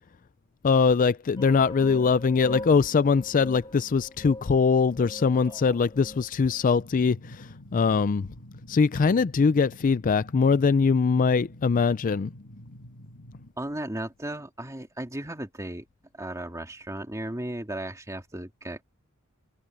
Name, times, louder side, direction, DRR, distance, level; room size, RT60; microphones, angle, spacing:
voice 1, 0.6-8.3 8.7-12.3, left 5 dB, 40° left, 0.4 m, -22 dB
sound 1, 1.4-6.6, left 1 dB, 20° left, 3.5 m, -41 dB
sound 2, 6.7-13.5, left 1 dB, 60° left, 2.9 m, -47 dB
voice 2, 13.6-15.9 16.1-18.8, right 1 dB, 15° right, 2.4 m, -35 dB
open air
head